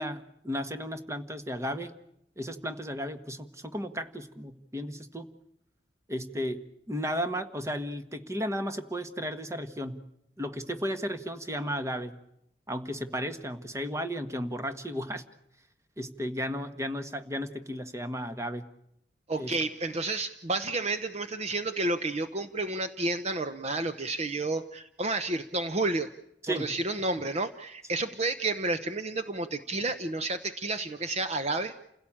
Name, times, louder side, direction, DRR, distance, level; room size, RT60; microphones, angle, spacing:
voice 1, 0.0-1.9 2.4-5.3 6.1-10.0 10.4-12.1 12.7-15.2 16.0-18.6 19.4-19.5 26.4-26.7, equal, 15° right, 9 dB, 1.4 m, -34 dB
voice 2, 19.3-26.1 26.5-31.7, right 2 dB, 35° right, 10 dB, 0.8 m, -31 dB
29.0 x 17.0 x 8.7 m, 0.80 s
head